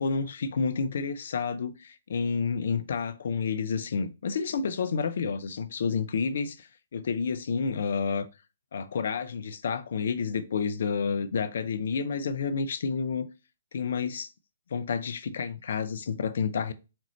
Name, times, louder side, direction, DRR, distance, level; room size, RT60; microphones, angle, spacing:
voice 1, 0.0-6.7 6.9-8.3 8.7-13.3 13.7-14.3 14.7-16.7, left 5 dB, 60° left, 0.5 m, -30 dB
4.4 x 3.7 x 3.0 m
figure-of-eight pair, 130°, 0 cm